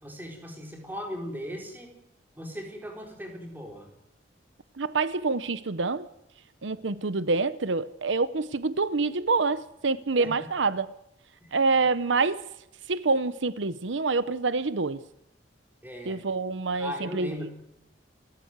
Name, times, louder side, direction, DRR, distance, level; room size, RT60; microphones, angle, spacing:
voice 1, 0.0-1.9 2.4-3.9 10.2-10.4 11.4-11.6 15.8-16.2 16.7-17.5, equal, 10° right, 4.5 m, -38 dB
voice 2, 4.8-6.0 6.6-10.9 11.5-12.4 12.9-15.0 16.1-17.3, right 3 dB, 90° right, 0.9 m, -26 dB
28.5 x 14.0 x 8.1 m
head